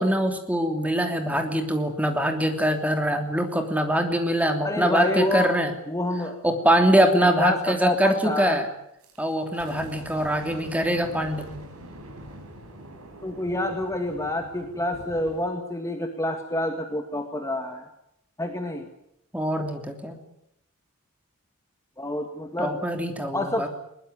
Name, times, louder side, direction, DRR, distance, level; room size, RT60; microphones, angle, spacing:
voice 1, 0.0-5.7 6.4-8.7 9.2-11.5 19.3-20.2 22.6-23.7, right 1 dB, 5° right, 5 dB, 3.0 m, -23 dB
voice 2, 4.6-5.5 5.9-6.4 7.0-8.6 13.2-17.9 18.4-18.9 22.0-22.8 23.3-23.7, left 1 dB, 15° left, 5 dB, 2.0 m, -28 dB
sound 1, 9.0-15.5, right 1 dB, 85° right, 6.1 m, -44 dB
22.0 x 20.0 x 9.7 m, 0.78 s
head